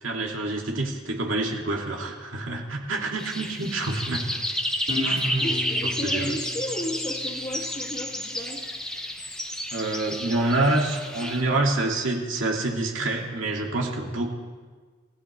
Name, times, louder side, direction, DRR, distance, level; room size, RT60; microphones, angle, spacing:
voice 1, 0.0-4.3 5.0-5.4 5.8-6.3 9.7-14.3, right 2 dB, 70° right, 0 dB, 2.3 m, -27 dB
sound 1, 3.2-11.4, equal, 5° left, 1.1 m, -31 dB
Guitar, 4.9-8.1, left 1 dB, 45° right, 5.0 m, -35 dB
voice 2, 5.4-8.7, left 1 dB, 25° left, -1 dB, 2.4 m, -33 dB
27.5 x 16.0 x 3.3 m, 1.5 s
head